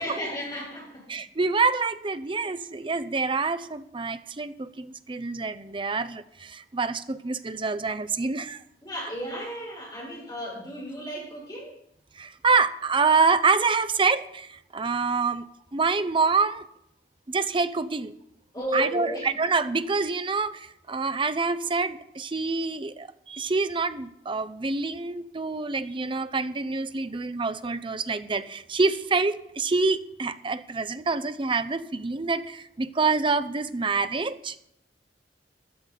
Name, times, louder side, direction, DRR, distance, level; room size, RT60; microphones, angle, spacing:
voice 1, 0.0-1.0 8.8-11.7 18.5-19.3, equal, 25° left, -4 dB, 7.2 m, -33 dB
voice 2, 1.1-8.6 12.2-15.5 15.7-16.7 17.3-18.1 18.7-34.6, right 4 dB, 30° right, 12 dB, 0.7 m, -26 dB
15.5 x 12.0 x 4.1 m, 0.75 s
head